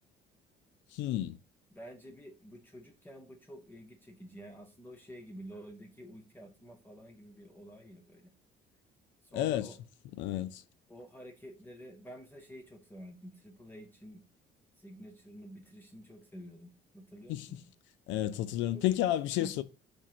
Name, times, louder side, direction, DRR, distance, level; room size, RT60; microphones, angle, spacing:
voice 1, 0.9-1.4 9.3-9.7 10.2-10.6 17.3-17.5 18.1-19.6, left 13 dB, 80° left, 0.4 m, -31 dB
voice 2, 1.7-8.3 9.3-9.8 10.9-14.2 14.8-17.7 18.7-18.9 19.4-19.6, equal, 10° left, 0.6 m, -50 dB
4.4 x 2.5 x 4.8 m
cardioid pair, 135°, 19 cm